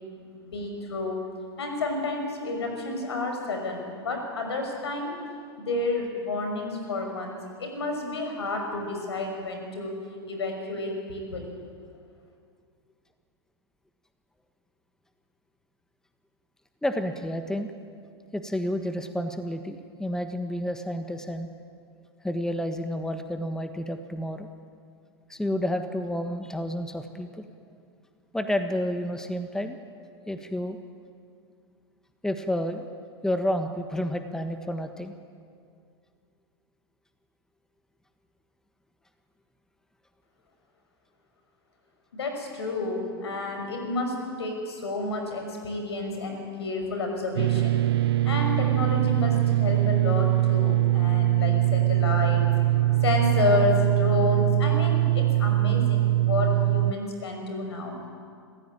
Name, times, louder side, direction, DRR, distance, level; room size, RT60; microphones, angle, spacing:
voice 1, 0.4-1.2 1.6-5.1 5.6-9.9 10.3-11.5 42.1-47.8 48.2-52.4 52.9-58.0, left 3 dB, 80° left, 3 dB, 5.9 m, -30 dB
voice 2, 16.8-17.7 18.3-21.5 22.2-24.5 25.3-27.4 28.3-29.8 30.3-30.8 32.2-32.9 33.2-35.1, equal, 5° left, 7 dB, 1.5 m, -30 dB
sound 1, 47.4-56.9, right 15 dB, 70° right, 0.5 m, -22 dB
27.5 x 15.0 x 9.0 m, 2.3 s
hypercardioid pair, 100°, 13 cm